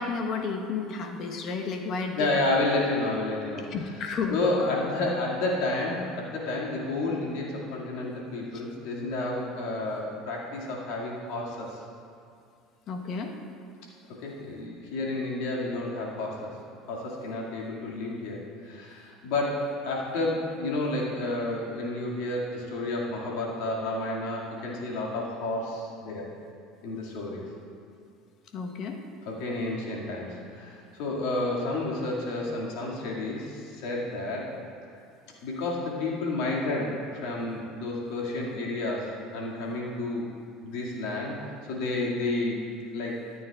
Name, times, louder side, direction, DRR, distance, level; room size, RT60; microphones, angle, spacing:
voice 1, 0.0-2.3 3.7-4.4 12.9-13.3 28.5-29.0, left 5 dB, 55° left, 3 dB, 1.1 m, -31 dB
voice 2, 2.2-4.0 4.3-11.8 14.2-16.6 16.9-26.3 26.8-27.4 29.2-34.5 35.4-40.3 40.6-41.4 41.7-42.6 42.9-43.2, left 2 dB, 75° left, -3 dB, 2.1 m, -30 dB
13.0 x 9.4 x 2.4 m, 2.3 s
hypercardioid pair, 85°, 0 cm